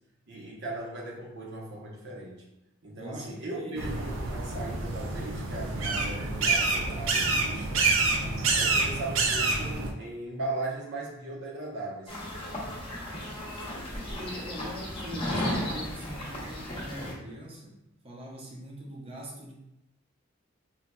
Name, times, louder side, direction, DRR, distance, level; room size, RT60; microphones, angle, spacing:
voice 1, 0.3-2.5 2.8-7.9 8.5-12.2, right 2 dB, 60° right, -3 dB, 0.8 m, -38 dB
voice 2, 3.0-3.9 5.7-5.9 8.1-8.5 13.9-17.8 18.0-19.5, equal, 30° right, -2 dB, 0.6 m, -42 dB
sound 1, 3.8-9.9, right 3 dB, 90° right, 0.5 m, -27 dB
sound 2, 12.1-17.1, left 1 dB, 30° left, 0.7 m, -35 dB
3.9 x 2.2 x 2.2 m, 0.88 s
head